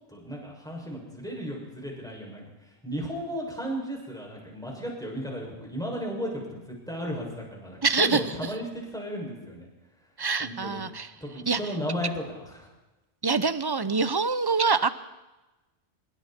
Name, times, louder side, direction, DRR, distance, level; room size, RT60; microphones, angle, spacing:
voice 1, 0.1-9.7 10.4-10.8 11.2-12.7, equal, 5° left, -2 dB, 6.7 m, -35 dB
voice 2, 7.8-8.2 10.2-11.1 11.5-11.6 13.2-14.9, right 4 dB, 25° right, 13 dB, 0.8 m, -25 dB
25.5 x 23.0 x 4.5 m, 1.1 s
omnidirectional pair, 1.2 m